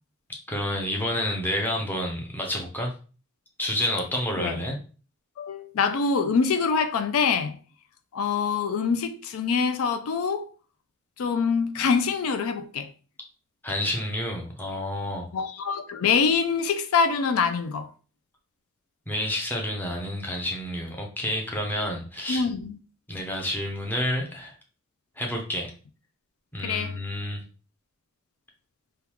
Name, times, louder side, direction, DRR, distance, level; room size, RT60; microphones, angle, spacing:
voice 1, 0.5-2.9 3.6-4.8 13.6-15.3 19.1-22.5 23.1-24.5 25.2-25.7 26.5-27.4, left 1 dB, 10° left, 0.7 m, -29 dB
voice 2, 5.4-7.6 8.1-10.5 11.2-12.9 15.3-17.9 22.3-22.7 26.6-27.0, left 5 dB, 75° left, 0.4 m, -25 dB
3.6 x 2.3 x 3.0 m
head